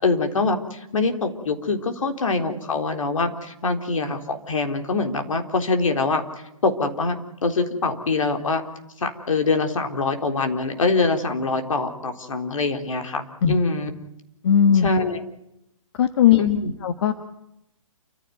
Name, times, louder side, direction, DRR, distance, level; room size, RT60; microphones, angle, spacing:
voice 1, 0.0-6.2 6.6-8.6 9.0-13.9 14.8-15.2 16.4-16.7, left 3 dB, 70° left, 6 dB, 3.9 m, -24 dB
voice 2, 14.4-14.9 16.0-16.4 16.8-17.1, left 9 dB, 50° left, 8 dB, 1.6 m, -17 dB
28.5 x 15.5 x 9.4 m, 0.84 s
figure-of-eight pair, 135°, 17 cm